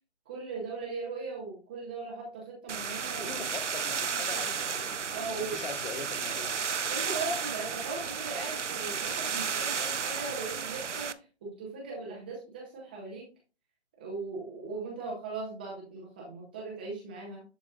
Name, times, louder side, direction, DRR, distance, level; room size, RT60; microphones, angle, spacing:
voice 1, 0.3-3.3 4.1-4.6 4.8-5.6 6.9-13.3 14.0-17.4, right 3 dB, 10° right, 0.6 m, -39 dB
sound 1, 2.7-11.1, right 6 dB, 85° right, 0.8 m, -33 dB
voice 2, 3.2-6.6, left 5 dB, 50° left, 1.3 m, -42 dB
11.5 x 4.1 x 2.3 m
figure-of-eight pair, 150°, 35 cm